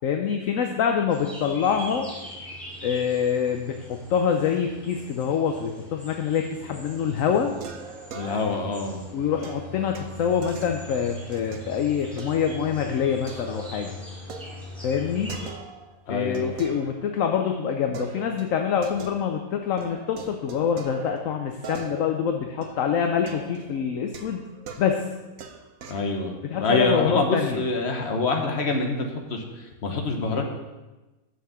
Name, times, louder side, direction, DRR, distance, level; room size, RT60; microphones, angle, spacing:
voice 1, 0.0-2.1 2.8-7.5 9.1-14.0 14.8-15.3 16.1-24.4 24.8-25.0 26.5-27.6, left 7 dB, 70° left, 4 dB, 1.0 m, -25 dB
sound 1, 1.1-15.5, equal, ahead, 2.6 m, -42 dB
sound 2, 6.6-7.1 7.6-8.8 9.4-11.7 12.2-12.7 13.0-16.0 16.3-17.5 17.9-19.5 19.8-26.1, right 5 dB, 75° right, 1.2 m, -42 dB
voice 2, 8.1-9.0 16.1-16.5 25.9-30.4, left 3 dB, 50° left, 3 dB, 1.4 m, -26 dB
7.0 x 6.3 x 6.9 m, 1.1 s
omnidirectional pair, 1.5 m